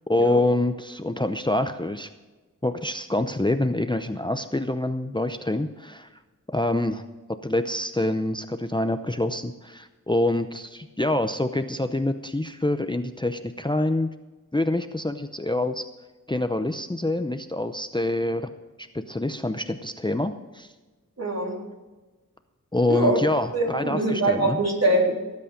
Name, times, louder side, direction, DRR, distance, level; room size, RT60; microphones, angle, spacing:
voice 1, 0.1-2.1 2.6-6.1 6.5-7.0 7.4-14.1 14.5-15.8 16.3-18.5 18.8-20.7 22.7-24.6, left 1 dB, 15° left, 9 dB, 0.6 m, -26 dB
voice 2, 21.2-21.5 22.9-23.2 23.5-25.1, right 1 dB, 50° right, -1 dB, 3.7 m, -23 dB
18.0 x 8.5 x 5.1 m, 1.2 s
wide cardioid pair, 50°, 32 cm